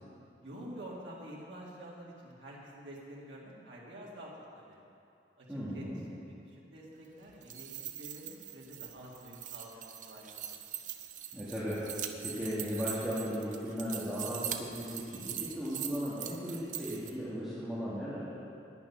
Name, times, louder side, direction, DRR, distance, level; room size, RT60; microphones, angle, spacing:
voice 1, 0.4-4.8 5.4-7.7 8.0-10.6, right 1 dB, 90° right, -5 dB, 2.0 m, -48 dB
voice 2, 5.5-6.0 11.3-11.8 12.2-18.3, equal, 5° right, -12 dB, 1.8 m, -36 dB
sound 1, 7.3-17.1, right 9 dB, 45° right, 0.6 m, -42 dB
9.7 x 9.5 x 5.7 m, 2.7 s
head